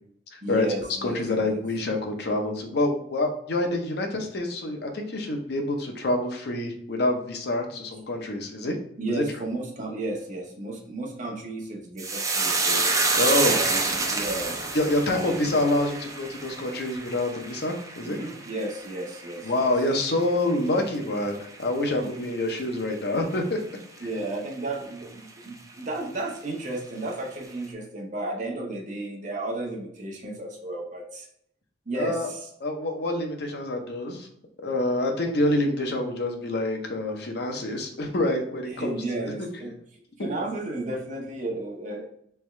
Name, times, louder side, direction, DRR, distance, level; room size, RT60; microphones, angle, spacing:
voice 1, 0.4-1.6 8.2-8.3 9.0-12.9 13.4-14.6 15.1-15.4 18.2-19.7 22.0-22.3 24.0-31.3 31.9-32.5 38.7-39.7 40.2-42.1, right 2 dB, 45° right, 0 dB, 0.9 m, -33 dB
voice 2, 1.0-8.8 9.1-9.2 13.1-13.6 14.7-18.2 19.4-23.6 32.0-32.3 32.6-34.3 34.6-39.0 39.4-39.5 40.2-40.3, left 1 dB, 65° left, 3 dB, 0.7 m, -27 dB
sound 1, 12.0-20.6 20.9-21.6 21.8-22.1, right 3 dB, 20° right, 0.5 m, -28 dB
3.5 x 3.4 x 3.1 m, 0.68 s
head